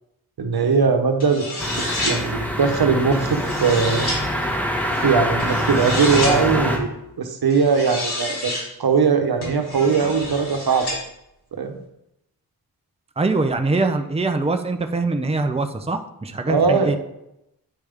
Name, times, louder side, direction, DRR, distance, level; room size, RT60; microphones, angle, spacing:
voice 1, 0.4-1.5 1.7-4.1 5.0-6.9 7.2-8.5 8.8-11.0 11.5-11.8 16.5-16.9, right 5 dB, 70° right, 6 dB, 1.0 m, -20 dB
sound 1, 1.2-2.2 3.1-4.2 5.4-6.4 7.5-8.6 9.4-11.0, left 2 dB, 80° left, 2.9 m, -29 dB
sound 2, 1.6-6.8, equal, 5° left, 1.6 m, -24 dB
voice 2, 13.2-17.0, right 3 dB, 15° right, 6 dB, 0.7 m, -23 dB
9.6 x 5.1 x 3.5 m, 0.83 s
cardioid pair, 50°, 38 cm